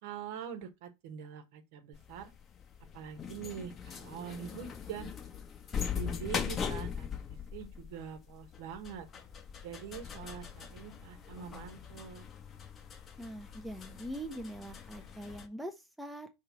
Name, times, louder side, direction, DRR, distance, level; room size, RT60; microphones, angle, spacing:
voice 1, 0.0-2.3 2.9-5.1 5.9-9.1 9.6-12.3, right 8 dB, 55° right, 1.3 m, -44 dB
sound 1, 1.9-15.5, left 7 dB, 30° left, 1.0 m, -41 dB
voice 2, 13.2-16.3, right 1 dB, ahead, 0.9 m, -42 dB
5.7 x 3.3 x 5.7 m
figure-of-eight pair, 85°, 0 cm